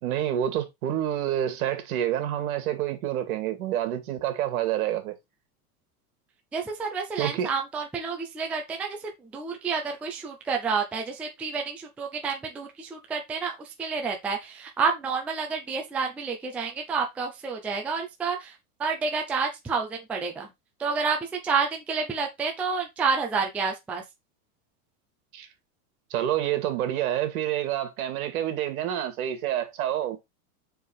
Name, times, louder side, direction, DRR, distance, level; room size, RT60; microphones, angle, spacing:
voice 1, 0.0-5.1 7.2-7.5 25.3-25.5 26.1-30.2, right 11 dB, 75° right, 2.2 m, -28 dB
voice 2, 6.5-9.0 9.3-18.5 18.8-20.5 20.8-21.2 21.4-24.0, right 5 dB, 5° right, 0.4 m, -29 dB
5.3 x 4.7 x 4.4 m
supercardioid pair, 160°, 44 cm